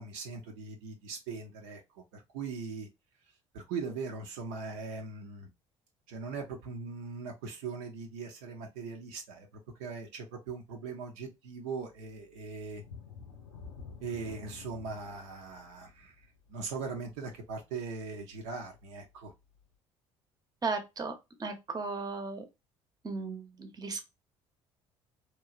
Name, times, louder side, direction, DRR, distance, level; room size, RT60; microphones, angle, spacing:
voice 1, 0.0-1.8 2.1-2.9 3.5-5.5 6.1-9.5 9.8-12.8 14.0-19.3, right 4 dB, 65° right, 0.6 m, -40 dB
sound 1, 12.7-18.2 18.6-18.8 19.3-19.4, left 5 dB, 85° left, 0.6 m, -50 dB
voice 2, 20.6-21.1 21.4-22.4 23.0-24.0, right 4 dB, 25° right, 0.8 m, -35 dB
2.9 x 2.2 x 2.4 m
figure-of-eight pair, 55°, 16 cm